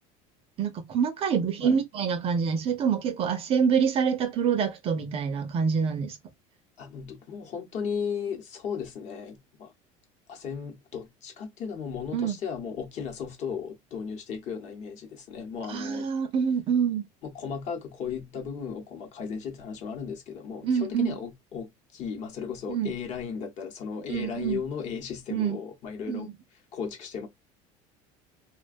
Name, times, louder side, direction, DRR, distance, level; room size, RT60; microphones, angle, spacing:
voice 1, 0.6-6.2 12.1-12.4 15.7-17.1 20.6-21.2 22.7-22.9 24.1-24.6 25.3-25.6 26.1-26.3, right 7 dB, 35° right, 0.5 m, -26 dB
voice 2, 6.8-9.7 10.3-16.1 17.2-26.3 26.7-27.3, left 6 dB, 45° left, 0.9 m, -35 dB
2.4 x 2.2 x 2.4 m
cardioid pair, 145°, 16 cm